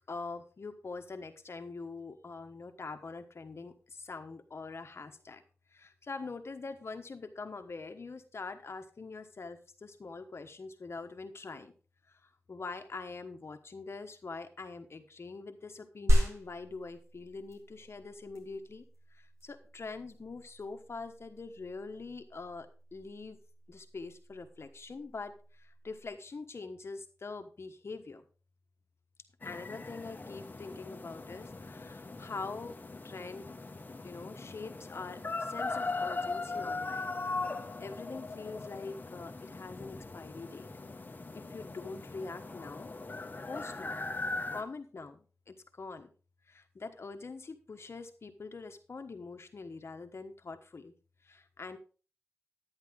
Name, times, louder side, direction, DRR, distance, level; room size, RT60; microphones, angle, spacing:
voice 1, 0.1-5.4 5.7-11.7 12.1-18.8 19.1-23.4 23.7-28.2 29.4-32.7 33.0-33.5 34.0-37.2 37.5-40.7 41.3-42.9 43.5-44.0 44.5-46.1 46.5-50.9 51.2-51.8, left 4 dB, 60° left, 7 dB, 1.2 m, -44 dB
sound 1, 16.1-26.1, equal, 75° right, 4.5 m, -35 dB
sound 2, 29.4-44.6, left 3 dB, 40° left, 1.1 m, -40 dB
10.5 x 9.9 x 3.7 m, 0.37 s
wide cardioid pair, 105°, 5 cm